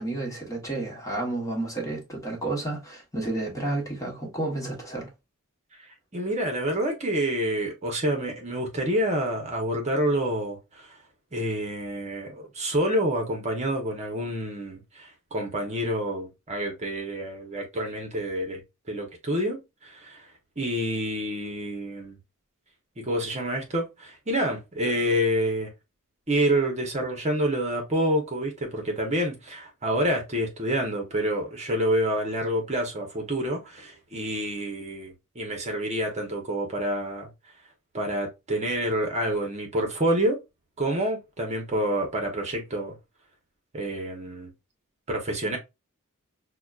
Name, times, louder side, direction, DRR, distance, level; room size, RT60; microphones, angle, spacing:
voice 1, 0.0-5.1, right 2 dB, 15° left, 1.1 m, -31 dB
voice 2, 6.1-11.0 11.3-18.6 18.9-20.2 20.6-22.2 23.0-25.7 26.3-37.3 37.9-40.4 40.8-42.9 43.7-44.5 45.1-45.6, right 1 dB, 30° right, 0.9 m, -28 dB
5.8 x 2.2 x 2.4 m
head